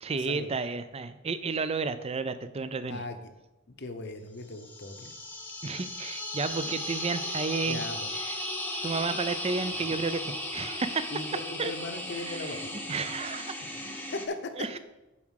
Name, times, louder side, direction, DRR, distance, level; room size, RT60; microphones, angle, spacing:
voice 1, 0.0-3.0 5.6-7.8 8.2-8.4 8.8-11.1 11.6-11.7 12.1-12.6 12.9-13.5 14.6-14.8, right 4 dB, 30° right, 12 dB, 0.4 m, -32 dB
voice 2, 3.8-5.1 7.7-8.1 11.1-13.0 14.1-14.7, left 2 dB, 55° left, 7 dB, 0.8 m, -38 dB
sound 1, 4.5-14.3, left 1 dB, 10° left, 0.8 m, -36 dB
7.2 x 4.9 x 6.4 m, 1.0 s
head